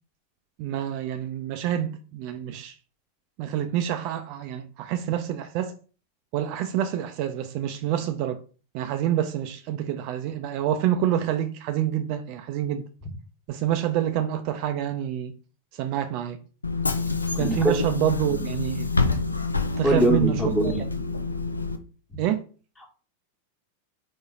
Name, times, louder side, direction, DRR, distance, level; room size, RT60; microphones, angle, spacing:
voice 1, 0.6-2.7 3.4-5.7 6.3-8.4 8.7-12.9 13.5-15.4 15.7-16.4 17.3-19.2 19.8-20.7 22.2-22.4, right 11 dB, 45° right, 0.4 m, -27 dB
Bus / Engine, 16.6-21.8, left 3 dB, 80° left, 0.4 m, -27 dB
voice 2, 17.4-17.8 18.3-18.4 19.8-20.8, right 1 dB, 10° left, 1.2 m, -22 dB
4.1 x 2.8 x 3.7 m
figure-of-eight pair, 90°, 0 cm